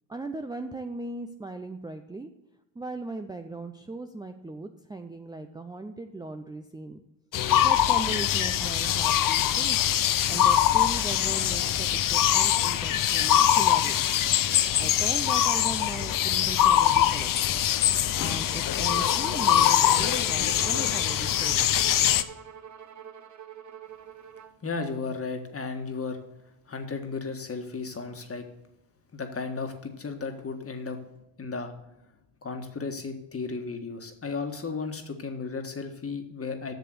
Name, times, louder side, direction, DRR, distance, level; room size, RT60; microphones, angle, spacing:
voice 1, 0.1-2.3 2.7-7.0 7.6-9.8 10.3-14.0 14.8-17.7 18.2-21.7, right 3 dB, 10° right, 6 dB, 0.6 m, -38 dB
sound 1, 7.3-22.2, left 11 dB, 45° left, 0.6 m, -23 dB
Bowed string instrument, 18.9-24.6, right 7 dB, 35° right, 1.0 m, -45 dB
voice 2, 24.6-26.2 26.7-28.4 29.1-31.0 31.4-31.7 32.4-36.7, left 4 dB, 30° left, 6 dB, 1.7 m, -34 dB
8.0 x 6.7 x 7.8 m, 0.88 s
supercardioid pair, 85°, 48 cm